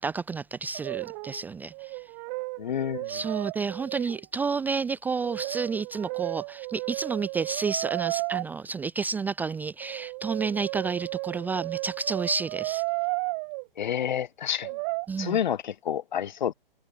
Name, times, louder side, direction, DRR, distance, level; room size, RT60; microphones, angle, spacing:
voice 1, 0.0-2.0 3.1-12.8 15.1-15.4, right 5 dB, 5° right, 0.7 m, -30 dB
Brass instrument, 0.7-1.4 1.7-4.2 5.2-8.4 9.8-13.6 14.6-15.1, right 32 dB, 30° right, 3.0 m, -33 dB
voice 2, 2.6-3.1 13.8-14.7 15.2-16.5, left 9 dB, 50° left, 2.2 m, -29 dB
figure-of-eight pair, 125°, 29 cm